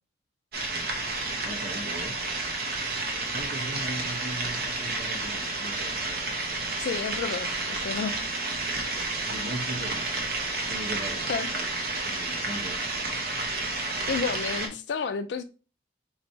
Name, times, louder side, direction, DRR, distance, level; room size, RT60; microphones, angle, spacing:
sound 1, 0.5-14.7, right 2 dB, 55° right, 0.8 m, -31 dB
voice 1, 1.4-2.1 3.3-6.4 9.3-10.1 10.7-11.7 12.0-12.8, right 1 dB, 85° right, 1.3 m, -38 dB
voice 2, 6.8-8.2 11.3-11.5 14.1-15.4, left 5 dB, 70° left, 0.3 m, -31 dB
4.3 x 3.1 x 2.6 m
head